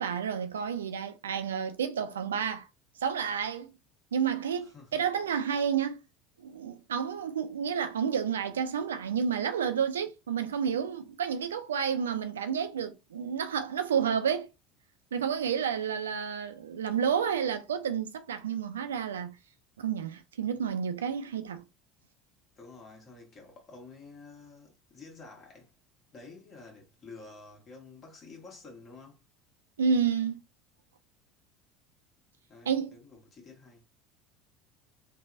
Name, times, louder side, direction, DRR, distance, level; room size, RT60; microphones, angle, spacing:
voice 1, 0.0-2.7 3.0-3.7 4.1-6.0 6.4-14.5 15.1-19.4 19.8-21.6 29.8-30.4 32.7-33.0, right 7 dB, 80° right, 0.3 m, -30 dB
voice 2, 4.6-5.1 22.6-25.7 26.1-29.2 32.5-33.8, left 3 dB, 35° left, 1.4 m, -50 dB
3.3 x 2.1 x 2.5 m
figure-of-eight pair, 70°, 0 cm